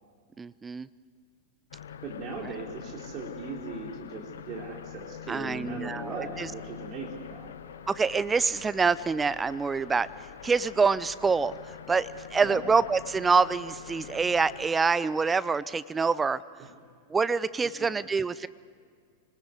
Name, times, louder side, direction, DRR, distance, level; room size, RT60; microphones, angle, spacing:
voice 1, 0.4-0.9 5.3-6.5 7.9-10.1 10.4-11.5 11.9-16.4 17.1-18.5, right 5 dB, 15° right, 18 dB, 0.5 m, -26 dB
sound 1, 1.7-14.7, left 8 dB, 65° left, 1.0 m, -45 dB
voice 2, 2.0-7.5 12.4-12.6 16.6-16.7, right 3 dB, 35° right, 0 dB, 4.0 m, -39 dB
26.5 x 19.5 x 8.0 m, 2.1 s
figure-of-eight pair, 90°, 0 cm